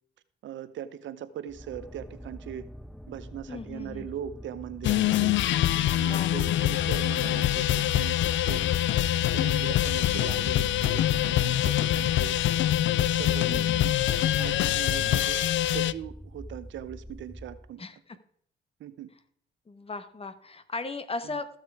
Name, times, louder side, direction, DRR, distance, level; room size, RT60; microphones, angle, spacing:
voice 1, 0.4-2.7 3.1-5.4 5.9-8.2 8.4-12.3 13.0-13.9 14.4-17.8 18.8-19.1 21.2-21.4, right 10 dB, 70° right, 14 dB, 0.8 m, -40 dB
sound 1, 1.5-17.7, equal, ahead, 0.4 m, -45 dB
voice 2, 3.5-4.1 6.0-6.4 13.5-13.8 17.8-18.0 19.7-21.5, left 3 dB, 30° left, 11 dB, 1.2 m, -37 dB
sound 2, 4.8-15.9, left 13 dB, 70° left, 0.5 m, -25 dB
14.5 x 6.5 x 4.8 m, 0.63 s
cardioid pair, 90°, 20 cm